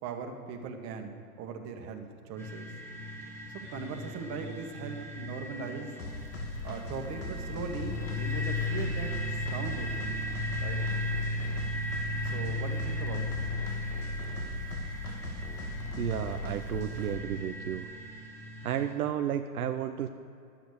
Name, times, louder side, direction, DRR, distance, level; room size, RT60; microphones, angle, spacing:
voice 1, 0.0-2.7 3.5-6.3 6.6-9.9 10.6-10.8 12.2-14.0 14.4-14.6, right 5 dB, 35° right, 4 dB, 1.6 m, -40 dB
sound 1, 2.4-18.9, left 1 dB, 5° left, 1.7 m, -36 dB
sound 2, 6.0-17.2, left 2 dB, 80° left, 2.9 m, -38 dB
voice 2, 16.0-17.9 18.6-20.1, right 10 dB, 70° right, 7 dB, 0.8 m, -32 dB
12.0 x 8.8 x 6.5 m, 2.6 s
hypercardioid pair, 130°, 45 cm